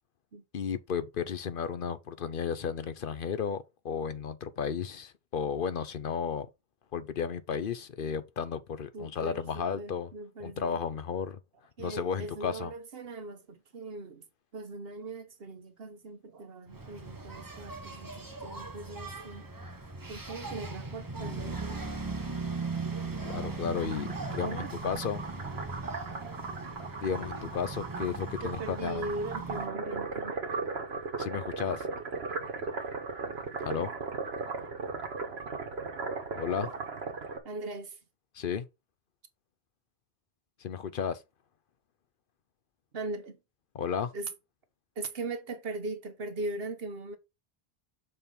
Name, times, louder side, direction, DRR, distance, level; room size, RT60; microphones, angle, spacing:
voice 1, 0.5-6.5 6.9-10.1 10.4-11.4 11.8-12.7 23.2-24.1 24.3-25.2 27.0-29.1 31.2-31.9 33.6-33.9 36.3-36.7 38.3-38.7 40.6-41.2 43.7-44.1, left 7 dB, 60° left, 0.8 m, -33 dB
voice 2, 8.9-10.8 11.8-14.3 14.5-19.5 20.1-21.9 24.4-24.7 28.4-30.7 35.3-35.4 37.4-38.0 42.9-43.4 44.1-44.3 44.9-47.2, right 2 dB, 70° right, 1.3 m, -40 dB
Engine, 16.7-29.7, right 3 dB, 20° right, 0.9 m, -39 dB
sound 1, 23.8-37.4, right 4 dB, 90° right, 1.5 m, -37 dB
6.8 x 3.8 x 5.3 m
omnidirectional pair, 1.0 m